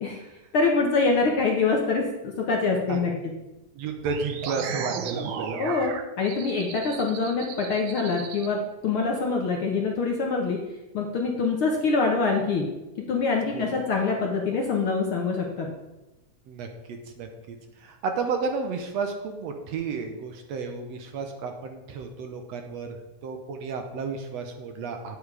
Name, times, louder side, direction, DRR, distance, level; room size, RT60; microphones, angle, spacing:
voice 1, 0.5-3.1 5.6-10.6 10.9-12.7 13.1-15.7, left 4 dB, 60° left, 0 dB, 1.5 m, -25 dB
voice 2, 3.8-5.8 13.5-13.7 16.5-23.0 23.2-25.2, right 4 dB, 70° right, 5 dB, 1.9 m, -32 dB
sound 1, 4.0-8.5, right 7 dB, 90° right, 1.1 m, -35 dB
9.4 x 8.3 x 4.8 m, 1.0 s
omnidirectional pair, 3.4 m